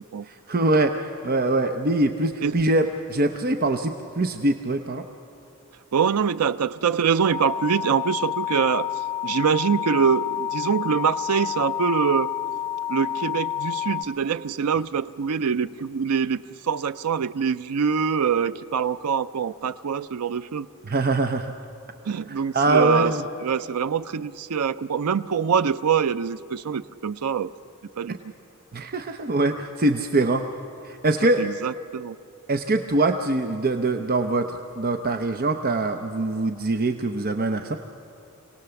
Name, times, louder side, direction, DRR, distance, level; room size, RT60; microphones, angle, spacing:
voice 1, 0.3-5.0 20.9-21.5 22.5-23.2 28.1-28.2 28.7-30.4 30.8-31.4 32.5-37.8, right 2 dB, 40° right, 6 dB, 0.7 m, -23 dB
voice 2, 5.9-8.9 9.2-12.3 12.9-20.7 22.1-23.1 23.4-27.5 28.0-28.2 31.2-32.2, right 6 dB, 85° right, 13 dB, 0.5 m, -24 dB
sound 1, 7.3-14.0, left 11 dB, 10° left, 0.6 m, -29 dB
27.0 x 18.0 x 7.0 m, 2.5 s
head